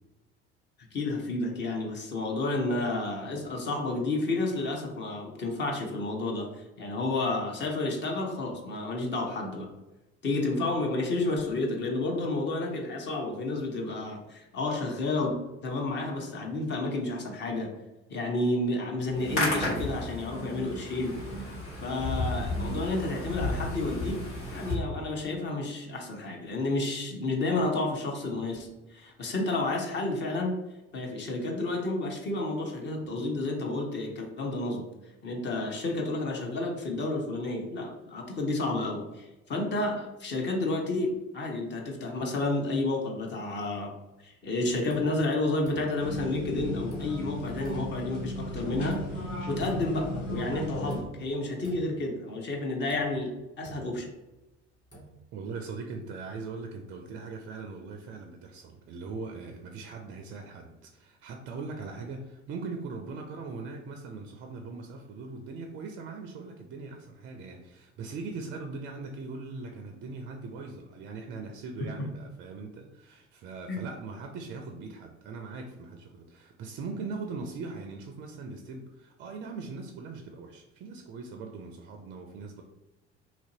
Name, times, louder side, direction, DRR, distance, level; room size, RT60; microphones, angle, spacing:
voice 1, 0.9-9.7 10.2-15.3 15.6-17.7 18.1-21.2 21.8-30.6 30.9-34.9 35.2-43.9 44.2-49.0 49.5-54.1 73.7-73.8, left 2 dB, 30° left, 1 dB, 0.6 m, -31 dB
Hands, 19.1-24.7, left 2 dB, 70° left, 1.5 m, -33 dB
sound 1, 44.9-45.3 45.6-46.2 46.9-47.3 47.6-48.1 48.9-49.2 49.6-50.1 50.9-51.3 51.6-52.1 52.9-54.4 54.8-55.2, right 2 dB, 10° left, 1.4 m, -48 dB
sound 2, 46.0-51.0, left 1 dB, 90° left, 0.6 m, -35 dB
voice 2, 55.3-82.6, right 4 dB, 35° right, 4 dB, 0.4 m, -40 dB
2.9 x 2.5 x 2.7 m, 1.0 s
figure-of-eight pair, 60°, 36 cm